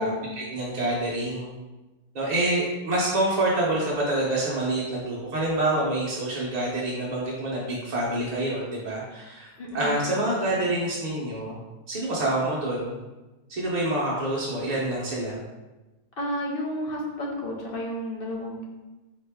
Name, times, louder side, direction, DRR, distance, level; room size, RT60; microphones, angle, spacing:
voice 1, 0.0-1.5 2.1-9.5 9.7-11.6 11.9-13.0 13.5-15.4, right 1 dB, 50° right, -5 dB, 0.5 m, -27 dB
voice 2, 9.6-10.0 16.2-18.6, left 1 dB, 45° left, -2 dB, 0.8 m, -31 dB
4.3 x 3.0 x 3.4 m, 1.1 s
omnidirectional pair, 1.7 m